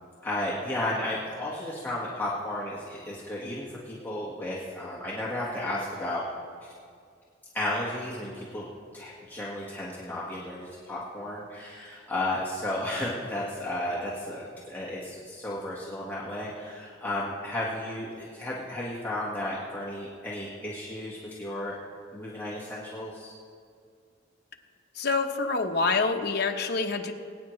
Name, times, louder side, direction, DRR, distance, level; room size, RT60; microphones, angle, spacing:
voice 1, 0.2-6.2 7.5-8.6 8.9-21.8 22.1-23.3, left 1 dB, 10° left, -7 dB, 1.5 m, -33 dB
voice 2, 25.0-27.1, left 4 dB, 55° left, 4 dB, 1.0 m, -26 dB
22.0 x 9.4 x 3.2 m, 2.2 s
head